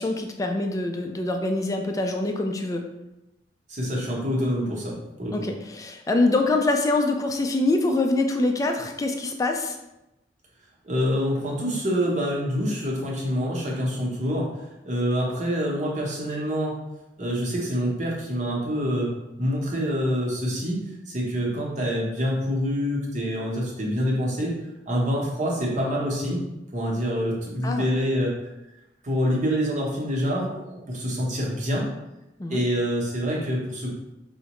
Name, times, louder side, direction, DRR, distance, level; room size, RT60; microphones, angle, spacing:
voice 1, 0.0-2.8 5.3-9.8 27.6-27.9 32.4-32.6, left 2 dB, 20° left, 3 dB, 0.3 m, -24 dB
voice 2, 3.7-5.5 10.8-14.5 14.8-16.8 17.2-19.1 19.4-24.5 24.9-26.4 26.7-28.3 29.0-31.9 32.5-33.9, equal, 40° right, -2 dB, 0.8 m, -26 dB
4.6 x 2.1 x 2.9 m, 0.95 s
head